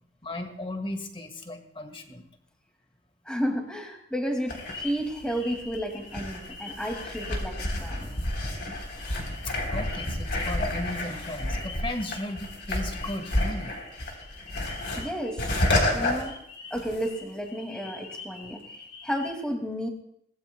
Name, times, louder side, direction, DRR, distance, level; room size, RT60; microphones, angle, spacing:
voice 1, 0.2-2.2 9.7-13.7, left 1 dB, 30° left, 6 dB, 1.6 m, -35 dB
voice 2, 3.3-8.2 15.0-15.5 15.9-16.4 16.7-18.6 19.0-19.9, equal, 5° left, 2 dB, 2.2 m, -32 dB
sound 1, 4.5-17.2 17.5-19.3, left 1 dB, 65° left, 3.7 m, -31 dB
24.0 x 18.0 x 2.3 m, 0.73 s
head